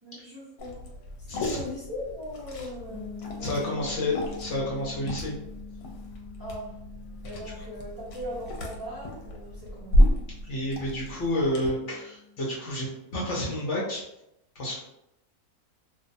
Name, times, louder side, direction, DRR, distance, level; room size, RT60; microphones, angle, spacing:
voice 1, 0.0-0.9 1.2-3.1 3.4-4.0 6.4-6.8 7.2-10.0, left 1 dB, 35° right, -9 dB, 0.3 m, -39 dB
Liquid, 0.6-11.7, equal, 85° left, 1.1 m, -31 dB
voice 2, 1.3-1.6 3.4-5.3 10.4-14.0 14.6-14.8, left 1 dB, 60° left, -5 dB, 0.9 m, -30 dB
sound 1, 2.9-12.6, left 6 dB, 35° left, 0.7 m, -46 dB
2.6 x 2.2 x 2.5 m, 0.84 s
omnidirectional pair, 1.6 m